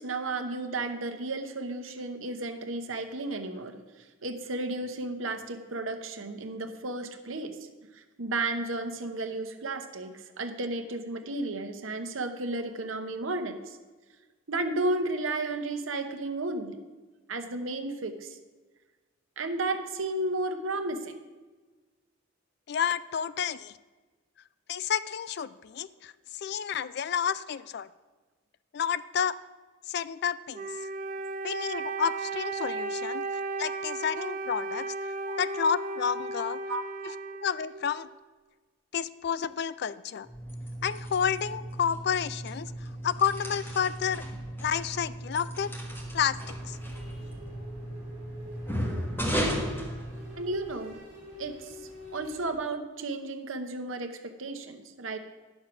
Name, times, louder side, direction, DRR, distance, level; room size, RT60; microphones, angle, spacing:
voice 1, 0.0-3.8 4.2-7.6 8.0-13.8 14.5-16.8 17.3-18.4 19.4-21.2 35.3-35.4 36.7-37.1 50.4-51.0 51.4-51.7 52.1-55.2, right 2 dB, 75° right, 7 dB, 1.0 m, -33 dB
voice 2, 22.7-23.8 24.7-27.9 28.7-29.4 29.9-30.7 31.4-33.2 33.6-34.9 35.4-36.6 37.0-37.1 37.4-38.1 38.9-40.3 40.8-44.2 44.6-45.7 46.1-46.8, left 7 dB, 50° left, 16 dB, 0.3 m, -30 dB
Wind instrument woodwind instrument, 30.5-38.1, right 3 dB, 40° right, 0.7 m, -35 dB
sound 1, 40.2-50.7, equal, 10° left, 1.4 m, -35 dB
sound 2, 45.8-52.6, left 1 dB, 25° right, 3.9 m, -47 dB
9.9 x 6.5 x 6.0 m, 1.3 s
head